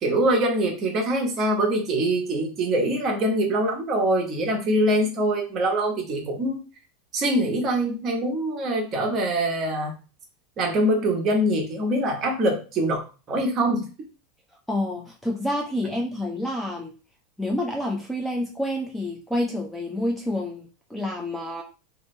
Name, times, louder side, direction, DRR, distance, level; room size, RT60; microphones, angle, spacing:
voice 1, 0.0-6.6 7.1-9.9 10.6-13.0 13.3-13.9, right 1 dB, 30° right, 1 dB, 1.0 m, -24 dB
voice 2, 14.7-16.9 17.4-21.6, left 1 dB, 5° left, 0 dB, 0.4 m, -28 dB
3.2 x 2.6 x 3.2 m, 0.35 s
supercardioid pair, 145°, 0 cm